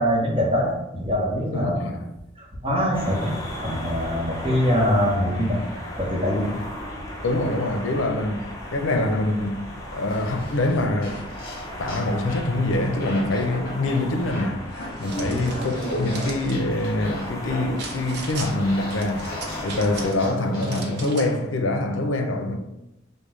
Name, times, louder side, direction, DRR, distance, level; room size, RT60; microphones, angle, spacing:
voice 1, 0.0-1.8 2.4-5.6 6.0-6.9 15.2-15.4, equal, 30° right, 0.9 m, -24 dB
voice 2, 1.5-2.0 7.2-9.6 9.9-11.2 11.8-14.6 15.0-19.3 19.6-22.6, left 2 dB, 85° left, 0.5 m, -25 dB
sound 1, 2.9-20.1, equal, 20° left, 0.7 m, -36 dB
sound 2, 10.1-12.5 13.0-21.0, left 1 dB, 50° left, 1.2 m, -36 dB
sound 3, 14.7-16.6 17.8-18.5 18.9-20.3 20.6-21.4, right 4 dB, 60° right, 0.6 m, -39 dB
5.1 x 2.2 x 3.1 m
head